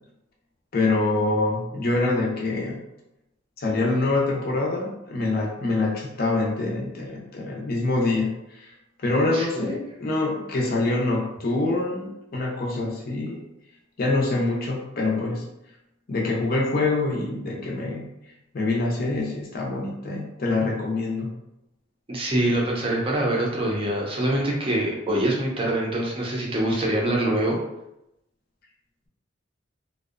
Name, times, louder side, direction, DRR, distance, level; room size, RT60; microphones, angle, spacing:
voice 1, 0.7-2.8 3.6-8.7 9.0-13.4 14.0-15.4 16.1-18.0 18.5-21.3, left 2 dB, 50° left, -2 dB, 0.5 m, -25 dB
voice 2, 9.3-9.7 22.1-27.6, right 1 dB, 30° right, -2 dB, 0.5 m, -24 dB
2.6 x 2.1 x 2.4 m, 0.86 s
head